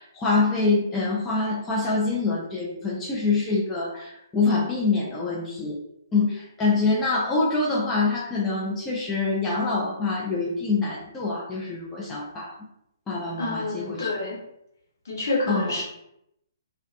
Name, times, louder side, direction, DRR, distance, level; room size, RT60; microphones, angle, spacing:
voice 1, 0.0-5.8 6.1-12.5 13.1-14.1 15.5-15.7, left 3 dB, 10° left, -6 dB, 0.4 m, -25 dB
voice 2, 13.3-14.4 15.0-15.8, left 2 dB, 55° left, -4 dB, 0.9 m, -28 dB
2.2 x 2.1 x 2.6 m, 0.79 s
figure-of-eight pair, 130°, 2 cm